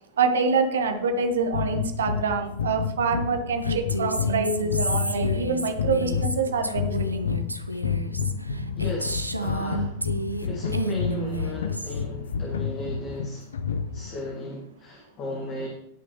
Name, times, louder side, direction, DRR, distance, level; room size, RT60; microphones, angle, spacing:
voice 1, 0.2-7.3, right 4 dB, 65° right, 6 dB, 1.1 m, -26 dB
sound 1, 1.5-14.2, left 7 dB, 65° left, 0.6 m, -30 dB
Female speech woman speaking, 3.6-10.5 10.7-12.0, right 2 dB, 85° right, 0.7 m, -31 dB
voice 2, 8.8-10.0 10.4-13.5 13.9-15.7, left 2 dB, 35° left, 0 dB, 1.8 m, -35 dB
17.5 x 6.1 x 3.2 m, 0.78 s
figure-of-eight pair, 90°, 0 cm